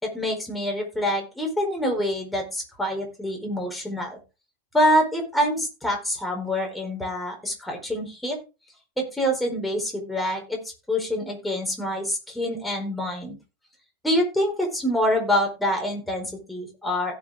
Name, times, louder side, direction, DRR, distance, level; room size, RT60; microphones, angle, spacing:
voice 1, 0.0-4.2 4.7-8.4 9.0-10.6 10.9-13.4 14.0-17.1, equal, 5° left, 0 dB, 4.5 m, -26 dB
16.5 x 6.3 x 3.5 m, 0.29 s
figure-of-eight pair, 90°, 0 cm